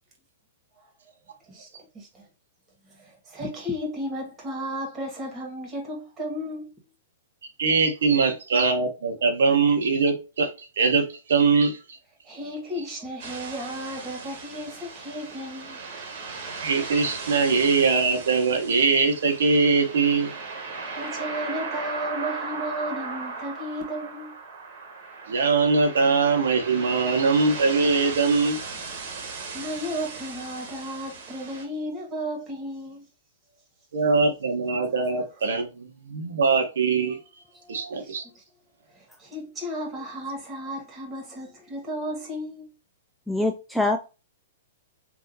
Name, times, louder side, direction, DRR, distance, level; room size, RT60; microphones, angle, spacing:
voice 1, 3.0-6.7 12.2-15.8 20.9-24.3 29.5-33.0 37.6-38.4 39.2-42.7, equal, 20° right, 1.6 m, -34 dB
voice 2, 7.6-10.5 10.8-11.8 16.6-20.3 25.3-28.6 33.9-35.7 36.1-37.2 37.7-38.2, right 4 dB, 75° right, 0.9 m, -22 dB
sound 1, 13.2-31.6, right 4 dB, 50° right, 1.2 m, -37 dB
voice 3, 43.3-44.0, left 2 dB, ahead, 0.3 m, -24 dB
3.6 x 2.6 x 2.7 m
hypercardioid pair, 125°, 0 cm